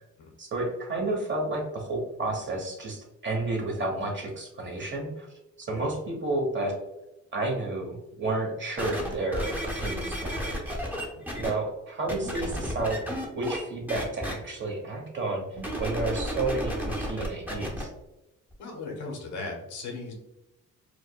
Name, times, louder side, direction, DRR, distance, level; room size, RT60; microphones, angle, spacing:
voice 1, 0.4-5.3 5.6-6.7 7.3-10.6 11.4-13.0 13.3-17.9, right 2 dB, 40° right, 0 dB, 1.1 m, -31 dB
sound 1, 8.8-11.5 12.1-13.6 13.9-14.3 15.6-17.8 18.5-18.6, equal, 5° right, 0.8 m, -32 dB
voice 2, 18.6-20.1, left 3 dB, 80° left, 1 dB, 1.0 m, -38 dB
4.6 x 2.2 x 2.3 m, 0.93 s
cardioid pair, 90°, 30 cm